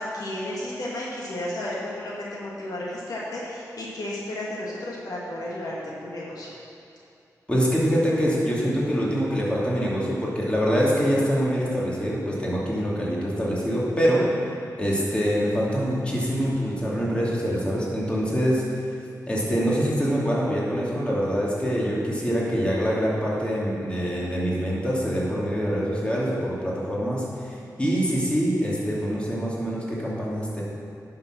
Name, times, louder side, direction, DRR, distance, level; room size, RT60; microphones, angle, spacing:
voice 1, 0.0-6.5, left 1 dB, 70° left, -5 dB, 2.0 m, -33 dB
voice 2, 7.5-14.2 14.8-18.6 19.3-30.6, equal, 15° left, -6 dB, 2.8 m, -25 dB
10.5 x 6.6 x 6.2 m, 2.6 s
cardioid pair, 75°, 7 cm